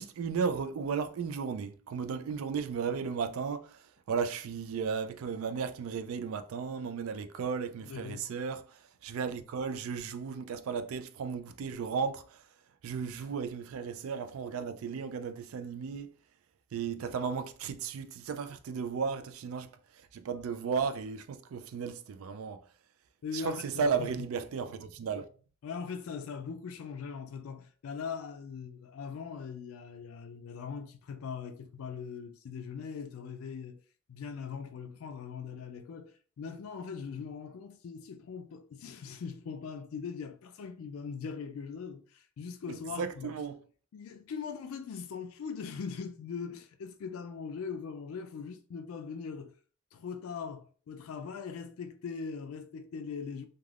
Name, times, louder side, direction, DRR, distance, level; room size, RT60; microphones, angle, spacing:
voice 1, 0.0-12.5 12.8-16.1 16.7-22.7 23.3-25.3 42.7-43.6, right 6 dB, 85° right, 0.3 m, -35 dB
voice 2, 7.8-8.3 23.2-24.3 25.6-33.8 34.1-43.3 43.9-49.5 49.9-53.5, left 6 dB, 85° left, 0.3 m, -41 dB
3.3 x 2.3 x 2.4 m
head